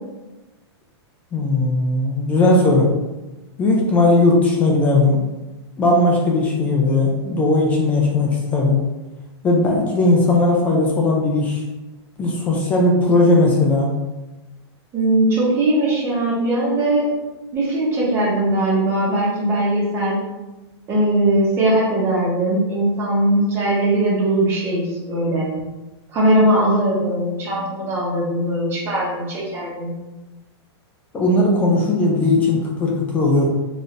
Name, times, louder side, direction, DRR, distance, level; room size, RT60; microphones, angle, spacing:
voice 1, 1.3-2.9 3.6-5.2 5.8-8.8 9.4-11.6 12.2-13.9 31.1-33.5, left 2 dB, 10° left, -2 dB, 0.3 m, -17 dB
voice 2, 14.9-17.1 17.5-20.2 20.9-25.5 26.1-29.9, right 1 dB, 15° right, -5 dB, 1.0 m, -20 dB
4.0 x 2.5 x 3.2 m, 1.1 s
supercardioid pair, 170°, 14 cm